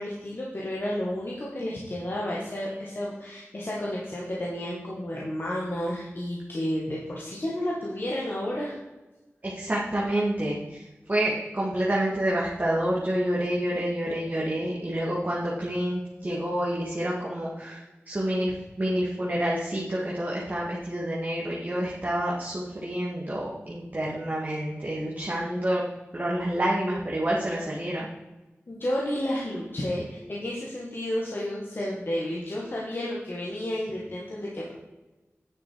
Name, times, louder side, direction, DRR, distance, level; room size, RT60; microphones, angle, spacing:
voice 1, 0.0-8.8 28.7-34.7, left 1 dB, 50° left, -4 dB, 1.9 m, -31 dB
voice 2, 9.4-25.8 26.1-28.1, right 1 dB, 35° right, -5 dB, 1.8 m, -28 dB
9.8 x 6.6 x 4.7 m, 1.1 s
wide cardioid pair, 75°, 5 cm